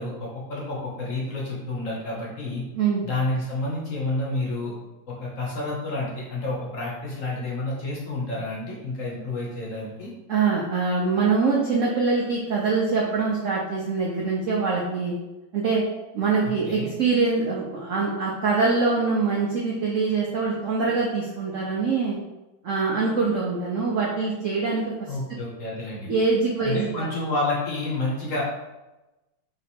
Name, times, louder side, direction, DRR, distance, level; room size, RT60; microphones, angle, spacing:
voice 1, 0.0-2.6 3.0-4.7 5.1-10.1 16.7-16.9 25.1-26.1 26.6-28.4, left 2 dB, 55° left, -4 dB, 1.0 m, -29 dB
voice 2, 10.3-15.1 15.5-15.8 16.1-22.2 22.6-24.8 26.1-27.1, right 4 dB, 90° right, -3 dB, 0.6 m, -24 dB
3.3 x 3.0 x 4.2 m, 1.0 s
omnidirectional pair, 2.1 m